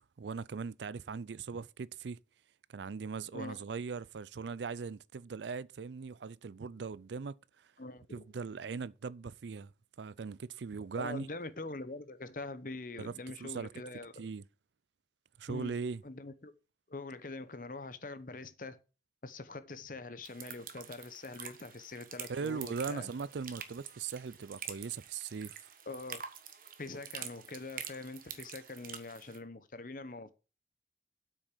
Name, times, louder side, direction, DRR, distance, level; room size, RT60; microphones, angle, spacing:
voice 1, 0.2-2.2 2.7-7.4 8.1-9.7 10.0-11.3 13.0-13.1 13.4-13.7 14.2-14.4 15.4-16.0 22.3-25.6, right 5 dB, 75° right, 0.4 m, -39 dB
voice 2, 3.3-3.7 7.8-8.2 11.0-14.3 15.5-16.5 16.9-18.8 19.2-23.1 25.9-26.2 26.8-30.3, left 3 dB, 50° left, 0.9 m, -44 dB
sound 1, 20.2-29.4, right 8 dB, 50° right, 1.3 m, -47 dB
8.3 x 6.2 x 6.7 m
head